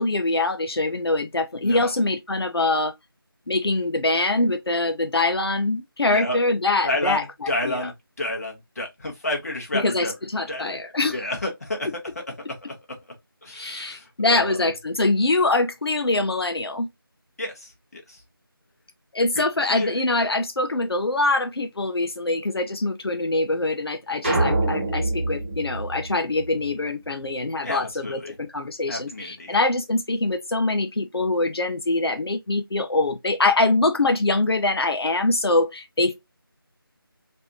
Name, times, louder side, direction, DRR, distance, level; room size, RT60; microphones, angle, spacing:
voice 1, 0.0-2.9 3.5-7.2 7.6-7.9 9.7-11.1 13.5-16.9 19.1-36.1, left 2 dB, 90° left, 0.5 m, -24 dB
voice 2, 1.6-2.0 6.1-6.4 6.8-10.1 10.5-10.8 11.1-11.9 12.5-12.7 13.4-14.7 17.4-18.2 19.3-20.0 27.6-28.4 28.9-29.6, left 1 dB, 40° left, 1.1 m, -30 dB
sound 1, 24.2-26.8, right 2 dB, 25° right, 1.0 m, -26 dB
3.2 x 2.6 x 2.8 m
figure-of-eight pair, 170°, 13 cm